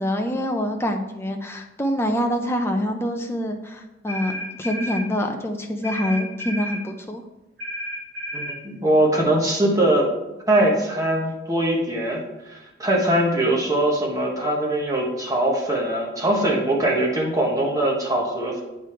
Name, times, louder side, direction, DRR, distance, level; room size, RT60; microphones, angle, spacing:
voice 1, 0.0-7.2, equal, 10° left, 4 dB, 0.6 m, -25 dB
sound 1, 4.1-5.1 5.8-6.8 7.6-8.6, equal, 50° right, 2.5 m, -32 dB
voice 2, 8.3-10.1 10.5-12.2 12.5-18.6, right 1 dB, 15° right, -2 dB, 1.2 m, -21 dB
9.1 x 3.4 x 4.4 m, 1.0 s
head